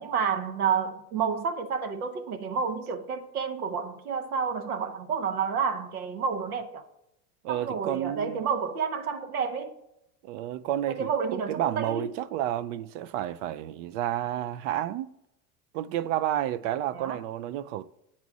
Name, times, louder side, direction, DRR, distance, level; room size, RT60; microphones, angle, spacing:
voice 1, 0.0-6.8 7.5-9.7 10.9-12.1 16.9-17.2, right 6 dB, 85° right, 1.1 m, -30 dB
voice 2, 7.4-8.4 10.2-15.1 15.7-17.9, right 12 dB, 55° right, 0.5 m, -31 dB
8.1 x 4.3 x 6.0 m
hypercardioid pair, 95°, 43 cm